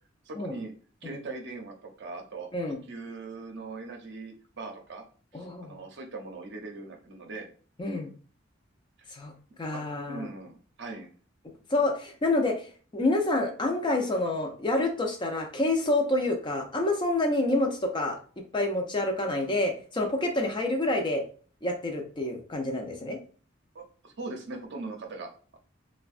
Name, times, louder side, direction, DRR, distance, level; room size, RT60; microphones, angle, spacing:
voice 1, 0.2-0.7 1.0-5.0 5.3-7.5 9.0-9.1 9.7-9.8 10.1-11.1 23.7-25.6, right 3 dB, 60° right, 3 dB, 0.6 m, -40 dB
voice 2, 5.3-5.8 7.8-8.1 9.1-9.3 9.6-10.3 11.7-12.7 12.9-18.2 18.5-21.2 21.6-23.2, left 2 dB, 25° left, 3 dB, 0.5 m, -28 dB
3.4 x 2.1 x 2.4 m, 0.40 s
head